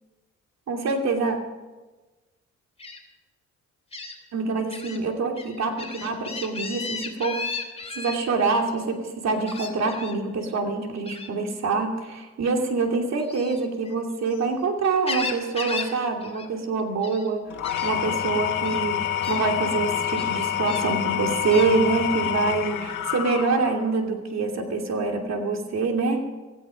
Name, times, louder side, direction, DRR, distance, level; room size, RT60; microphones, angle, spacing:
voice 1, 0.7-1.4 4.3-7.4 7.9-17.5 17.8-26.2, right 4 dB, 60° right, 3 dB, 2.8 m, -25 dB
Gull seagull, 2.8-3.0 3.9-4.1 4.7-5.0 5.4-8.2 9.5-10.2 11.1-11.3 13.2-14.4 14.8-16.0 16.2-16.5 16.8-17.3 17.6-17.9 18.6-18.8 19.2-19.4 20.2-20.9 21.5-21.7, left 4 dB, 20° left, 2.9 m, -35 dB
Engine / Tools, 17.5-23.9, left 10 dB, 85° left, 1.7 m, -27 dB
16.5 x 15.5 x 5.2 m, 1.2 s
cardioid pair, 90°, 30 cm